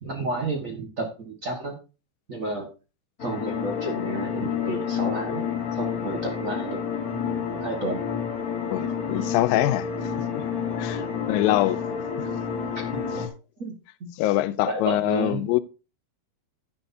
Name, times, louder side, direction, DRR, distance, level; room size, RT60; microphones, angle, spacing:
voice 1, 0.0-1.8 2.3-2.7 3.2-5.4 5.7-6.8 7.6-8.0 11.0-11.1 12.9-13.0 13.6-13.7 14.0-14.1 14.7-15.4, right 2 dB, 60° right, 0.8 m, -31 dB
sound 1, 3.2-13.3, left 7 dB, 55° left, 0.9 m, -29 dB
voice 2, 8.7-9.9 10.3-10.5 10.8-11.8 12.2-12.3 14.2-15.6, left 15 dB, 90° left, 2.4 m, -24 dB
11.0 x 10.0 x 2.7 m
omnidirectional pair, 4.0 m